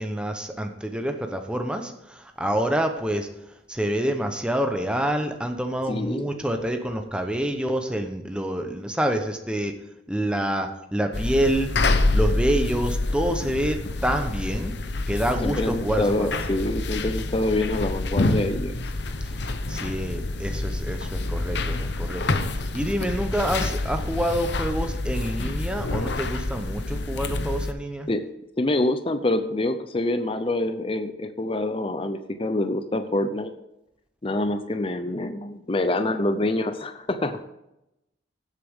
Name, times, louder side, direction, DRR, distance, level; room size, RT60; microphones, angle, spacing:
voice 1, 0.0-3.3 3.7-9.7 10.1-11.7 12.1-14.7 15.1-16.4 19.7-28.1, right 1 dB, 5° right, 4 dB, 0.9 m, -27 dB
voice 2, 5.9-6.4 15.4-18.8 28.1-28.2 28.6-33.5 34.2-37.4, left 1 dB, 25° left, 9 dB, 0.5 m, -26 dB
sound 1, 11.1-27.7, left 2 dB, 55° left, 0.8 m, -27 dB
16.5 x 8.2 x 3.6 m, 0.89 s
head